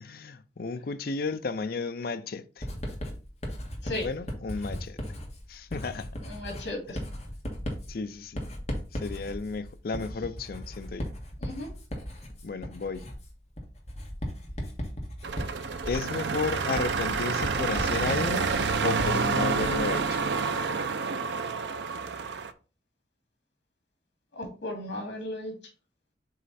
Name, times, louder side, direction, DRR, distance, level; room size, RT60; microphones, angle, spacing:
voice 1, 0.0-2.7 4.0-5.0 5.5-6.1 7.9-8.4 8.9-11.1 12.4-13.1 15.9-18.5 18.8-20.2, left 4 dB, 55° left, 0.5 m, -33 dB
Writing, 2.6-20.0, equal, 35° left, 1.6 m, -37 dB
voice 2, 6.2-7.0 11.4-11.7 24.3-25.5, left 1 dB, 75° left, 2.5 m, -35 dB
sound 1, 15.2-22.5, right 4 dB, 75° right, 0.5 m, -28 dB
7.5 x 3.2 x 4.1 m
head